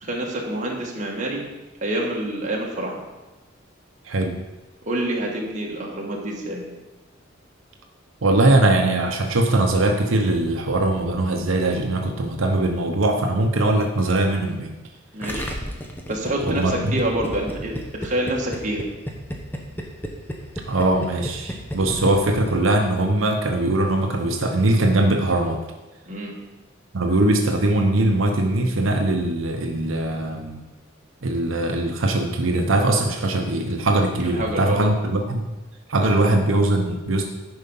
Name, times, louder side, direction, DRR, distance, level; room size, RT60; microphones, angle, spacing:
voice 1, 0.0-1.4 1.8-3.0 4.8-6.6 15.1-15.5 16.1-18.8 26.1-26.3 34.2-34.8, right 1 dB, 40° right, -2 dB, 1.7 m, -27 dB
voice 2, 4.1-4.4 8.2-14.7 16.4-17.0 20.7-25.6 26.9-30.6 31.2-35.4 35.9-37.2, right 2 dB, 90° right, 3 dB, 0.8 m, -21 dB
Gurgling, 15.2-22.8 23.0-23.1, equal, 10° left, 0.9 m, -32 dB
10.5 x 4.8 x 5.5 m, 1.1 s
head